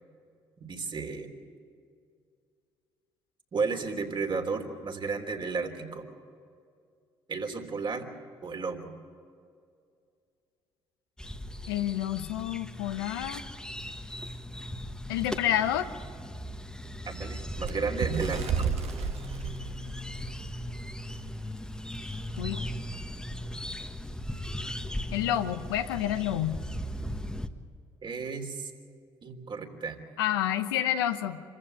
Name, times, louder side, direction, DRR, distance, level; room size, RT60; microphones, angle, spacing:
voice 1, 0.7-1.3 3.5-6.1 7.3-8.1 8.4-8.9 17.1-18.7 28.0-28.7 29.2-30.0, right 4 dB, 45° right, 5 dB, 3.3 m, -33 dB
sound 1, 11.2-27.5, equal, 5° left, 1.5 m, -38 dB
voice 2, 11.7-13.5 15.1-15.9 22.4-22.7 25.1-26.7 30.2-31.4, left 11 dB, 90° left, 9 dB, 0.9 m, -29 dB
Bird, 17.6-20.8 21.2-21.4 21.7-21.9 22.7-22.8, right 6 dB, 60° right, 1.4 m, -32 dB
26.0 x 15.0 x 8.8 m, 2.3 s
hypercardioid pair, 55°, 12 cm